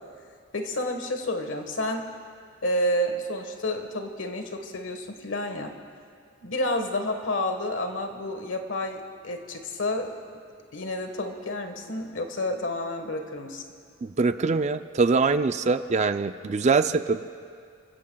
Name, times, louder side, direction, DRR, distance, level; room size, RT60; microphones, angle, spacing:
voice 1, 0.5-2.0 2.6-5.7 6.4-10.1 10.7-13.6, left 1 dB, 65° left, 5 dB, 1.4 m, -30 dB
voice 2, 14.0-17.2, right 4 dB, 35° right, 10 dB, 0.4 m, -23 dB
29.0 x 16.0 x 2.3 m, 2.2 s
head